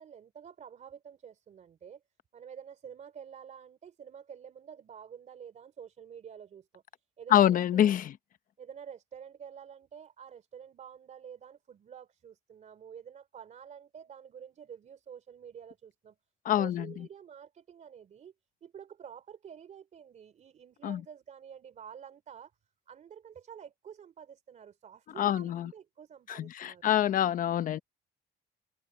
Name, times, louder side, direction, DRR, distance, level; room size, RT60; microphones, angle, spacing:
voice 1, 0.0-2.0 2.3-6.8 7.2-7.9 8.6-16.2 16.6-18.3 18.6-22.5 22.9-26.9 27.7-27.8, right 8 dB, 45° right, 3.2 m, -49 dB
voice 2, 7.3-8.1 16.4-17.1 20.8-21.0 25.2-25.7 26.3-27.8, left 11 dB, 55° left, 1.0 m, -26 dB
cardioid pair, 110°, 17 cm